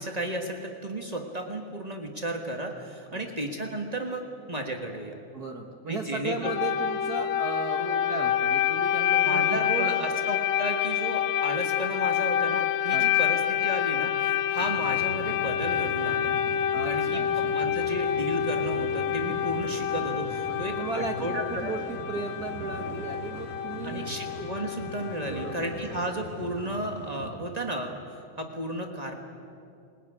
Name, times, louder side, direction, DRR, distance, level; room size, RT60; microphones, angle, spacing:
voice 1, 0.0-5.2 5.9-6.5 9.2-16.3 16.8-17.2 17.5-21.7 23.8-28.0 28.4-29.1, right 1 dB, 75° right, 3 dB, 0.3 m, -33 dB
voice 2, 5.3-10.0 12.9-13.1 16.7-17.5 20.5-24.1 25.1-26.0, right 3 dB, 60° right, 3 dB, 1.0 m, -36 dB
sound 1, 6.4-26.0, left 10 dB, 75° left, 2.3 m, -28 dB
sound 2, 14.6-27.3, right 1 dB, 35° right, 1.5 m, -42 dB
20.5 x 20.0 x 9.8 m, 2.6 s
omnidirectional pair, 3.4 m